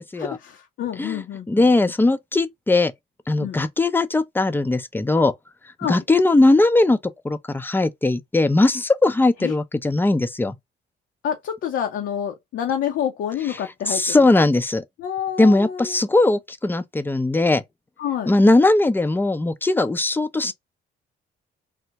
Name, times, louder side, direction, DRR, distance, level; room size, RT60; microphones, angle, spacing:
voice 1, 0.2-1.9 3.4-3.6 5.8-6.0 9.4-9.6 11.2-14.2 15.0-16.0 18.0-18.3, left 9 dB, 75° left, 0.7 m, -28 dB
voice 2, 1.0-2.9 3.3-5.3 5.9-7.0 7.2-10.6 13.9-14.8 15.4-17.6 18.3-20.5, left 2 dB, 10° left, 0.4 m, -19 dB
3.3 x 2.1 x 2.8 m
cardioid pair, 90°, 20 cm